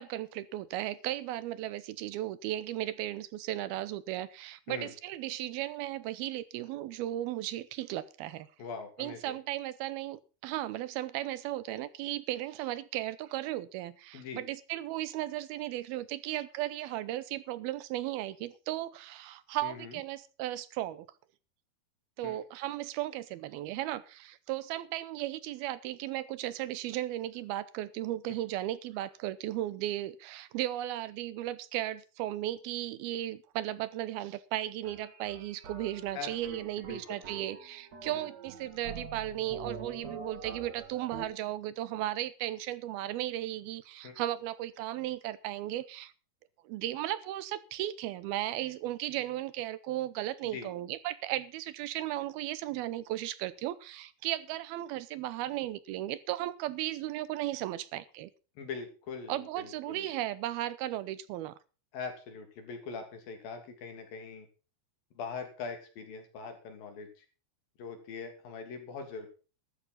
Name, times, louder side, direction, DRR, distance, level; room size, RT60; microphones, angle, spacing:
voice 1, 0.0-8.5 9.0-21.1 22.2-46.1 46.7-58.3 59.3-61.5, right 14 dB, 80° right, 17 dB, 2.7 m, -36 dB
voice 2, 8.6-9.4 14.1-14.4 19.6-20.0 22.2-22.4 36.1-37.2 38.1-38.3 44.0-44.2 50.5-50.7 58.6-60.1 61.9-64.5 65.2-67.3 67.8-69.3, left 5 dB, 65° left, 5 dB, 4.5 m, -42 dB
sound 1, 34.8-41.2, right 5 dB, 45° right, 3.3 m, -45 dB
13.0 x 13.0 x 4.1 m, 0.34 s
omnidirectional pair, 4.5 m